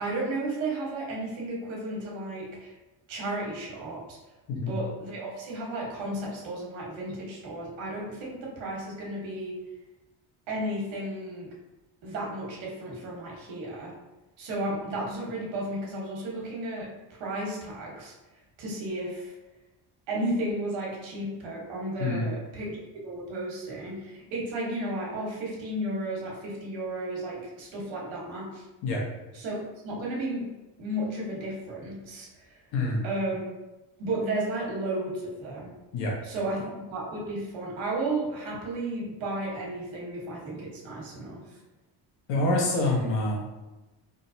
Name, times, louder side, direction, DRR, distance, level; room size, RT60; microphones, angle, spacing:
voice 1, 0.0-2.7 3.1-4.2 4.7-9.5 10.5-11.5 12.0-13.9 14.4-16.9 17.2-18.1 18.6-19.3 20.1-28.6 29.3-30.4 30.8-32.5 33.0-33.5 34.0-35.7 36.3-41.4, right 1 dB, 80° right, -3 dB, 1.3 m, -33 dB
voice 2, 42.3-43.4, left 2 dB, 75° left, -2 dB, 1.2 m, -26 dB
3.7 x 2.7 x 2.7 m, 1.1 s
cardioid pair, 100°, 45 cm